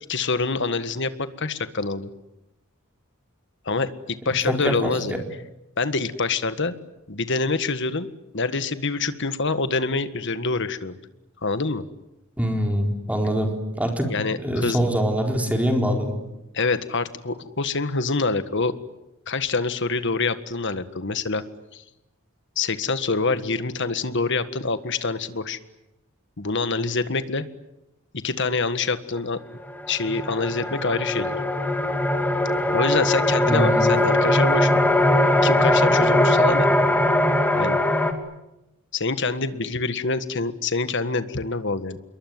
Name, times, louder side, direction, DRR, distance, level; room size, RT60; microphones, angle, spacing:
voice 1, 0.1-2.1 3.6-5.2 5.8-6.7 7.1-8.1 8.3-10.9 11.4-11.8 14.1-14.8 16.5-18.7 19.3-21.4 21.7-21.8 22.5-25.6 26.4-27.4 28.2-29.4 29.9-31.4 32.7-34.7 35.4-36.7 37.5-37.8 38.9-42.0, left 3 dB, 60° left, 11 dB, 1.7 m, -25 dB
voice 2, 4.5-5.2 12.4-14.1 14.4-16.2 33.5-33.9, equal, 5° right, 3 dB, 4.3 m, -24 dB
sound 1, 29.2-29.3 29.7-38.1, left 1 dB, 10° left, 2.6 m, -20 dB
27.5 x 22.5 x 9.4 m, 0.91 s
head